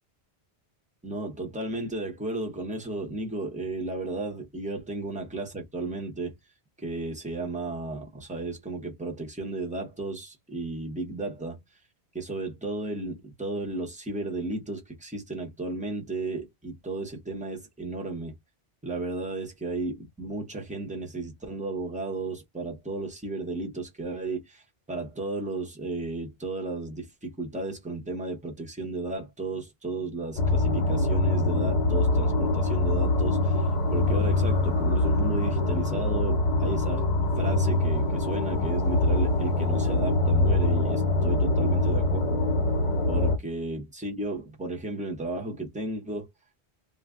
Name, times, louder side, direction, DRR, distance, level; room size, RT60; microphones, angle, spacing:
voice 1, 1.0-6.3 6.8-11.6 12.1-18.3 18.8-24.6 24.9-37.1 37.4-42.4 43.1-46.3, right 2 dB, 10° right, 0.7 m, -34 dB
sound 1, 30.4-43.4, left 2 dB, 45° left, 0.8 m, -24 dB
2.5 x 2.2 x 3.5 m
omnidirectional pair, 1.1 m